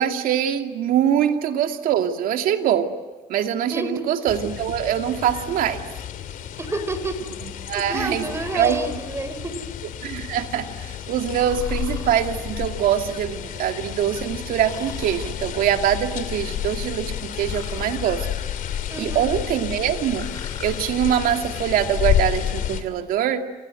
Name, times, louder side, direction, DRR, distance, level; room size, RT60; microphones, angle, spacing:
voice 1, 0.0-2.9 3.3-5.8 7.4-8.3 8.5-8.8 10.0-18.3 19.0-20.3 20.6-23.4, right 10 dB, 80° right, 7 dB, 2.5 m, -23 dB
voice 2, 3.7-4.0 6.6-7.2 7.7-9.6 18.9-19.3, right 2 dB, 20° right, 11 dB, 4.7 m, -29 dB
sound 1, 4.3-22.8, left 10 dB, 75° left, 2.9 m, -30 dB
Breathing, 8.1-9.0 11.3-12.3 14.6-15.3 17.4-17.9 20.1-20.8, left 4 dB, 25° left, 6.2 m, -41 dB
27.5 x 27.5 x 7.8 m, 1.3 s
cardioid pair, 100°, 14 cm